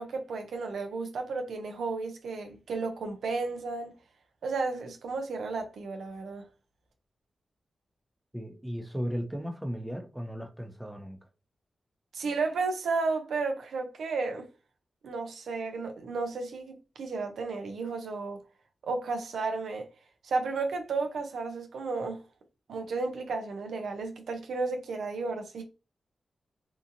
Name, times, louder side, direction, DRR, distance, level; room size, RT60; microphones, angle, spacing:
voice 1, 0.0-3.9 4.4-6.4 12.1-14.5 15.0-18.4 18.8-19.9 20.2-22.2 22.7-25.6, right 4 dB, 85° right, 0.5 m, -33 dB
voice 2, 8.3-11.2, equal, 10° right, 0.7 m, -36 dB
2.8 x 2.4 x 2.5 m
cardioid pair, 50°, 0 cm